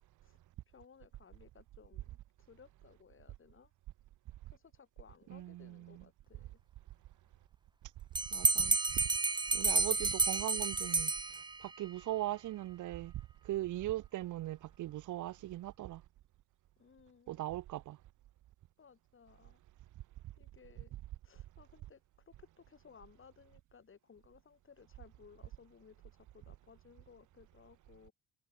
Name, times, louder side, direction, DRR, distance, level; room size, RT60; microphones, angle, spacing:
voice 1, 0.7-2.2 2.5-3.7 4.5-6.6 16.8-17.4 18.8-19.6 20.4-20.9 21.2-22.0 22.3-28.1, left 6 dB, 40° left, 7.9 m, -60 dB
voice 2, 5.3-6.0 8.3-9.1 9.5-13.1 13.4-16.0 17.3-18.0, right 15 dB, 85° right, 2.7 m, -39 dB
Bell, 8.2-11.8, right 3 dB, 15° right, 0.7 m, -31 dB
cardioid pair, 90°, 30 cm